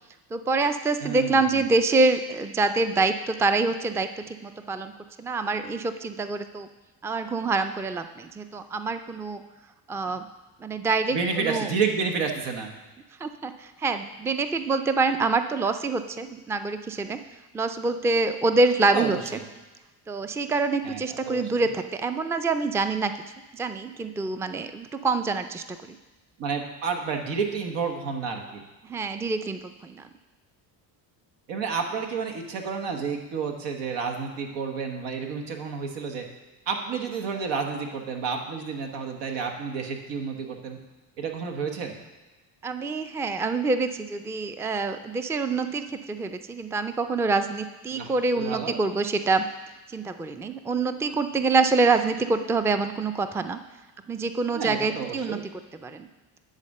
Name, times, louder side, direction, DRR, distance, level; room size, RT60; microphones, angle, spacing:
voice 1, 0.3-4.9 5.2-6.7 7.0-9.4 9.9-10.3 10.6-11.7 13.2-17.2 17.5-19.4 20.1-23.1 23.5-26.0 28.9-30.1 42.6-49.5 49.9-53.6 54.1-55.4 55.8-56.1, right 3 dB, 5° right, 9 dB, 0.3 m, -26 dB
voice 2, 1.0-1.6 11.1-12.7 18.9-19.2 20.8-21.5 26.4-28.6 31.5-36.3 36.7-40.8 41.2-42.0 47.9-48.7 54.5-55.4, right 5 dB, 90° right, 3 dB, 1.4 m, -30 dB
10.5 x 4.2 x 6.5 m, 1.2 s
cardioid pair, 95°, 42 cm